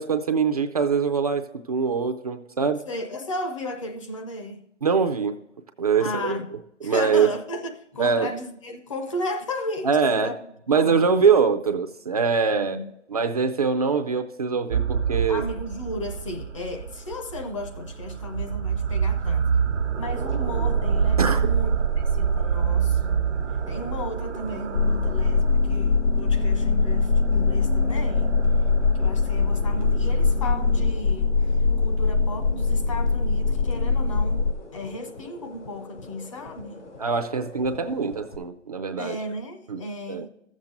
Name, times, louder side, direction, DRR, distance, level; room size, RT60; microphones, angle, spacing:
voice 1, 0.0-2.8 4.8-5.4 5.8-6.4 6.8-7.3 8.0-8.3 9.8-10.3 10.7-12.8 13.1-15.4 21.2-21.5 37.0-39.2 39.7-39.8 40.1-40.2, right 5 dB, 35° right, 0.5 m, -23 dB
voice 2, 2.9-4.6 6.0-6.5 6.8-10.4 10.7-11.0 12.6-12.9 15.3-19.5 20.0-23.3 23.7-28.3 29.0-36.8 39.0-40.3, left 1 dB, 25° left, 0.7 m, -34 dB
sound 1, 14.7-31.0, right 6 dB, 80° right, 1.0 m, -27 dB
sound 2, 18.7-38.4, left 2 dB, 85° left, 3.2 m, -44 dB
sound 3, 24.7-34.5, left 4 dB, 65° left, 0.7 m, -22 dB
14.0 x 7.4 x 3.9 m
hypercardioid pair, 155°, 35 cm